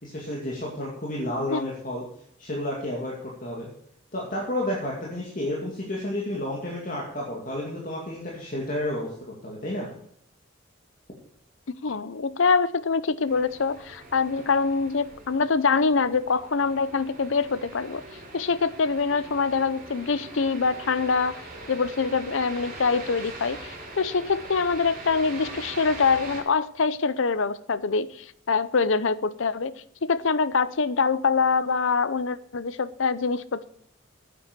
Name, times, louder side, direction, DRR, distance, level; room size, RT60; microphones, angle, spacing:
voice 1, 0.0-2.1 2.4-3.7 4.1-9.1 9.4-9.9, left 1 dB, 40° left, 2.3 m, -31 dB
voice 2, 11.8-18.0 18.3-21.4 21.7-29.7 30.0-33.7, left 4 dB, 75° left, 0.7 m, -24 dB
sound 1, 13.3-26.4, right 2 dB, 40° right, 4.9 m, -42 dB
9.6 x 8.4 x 6.7 m
head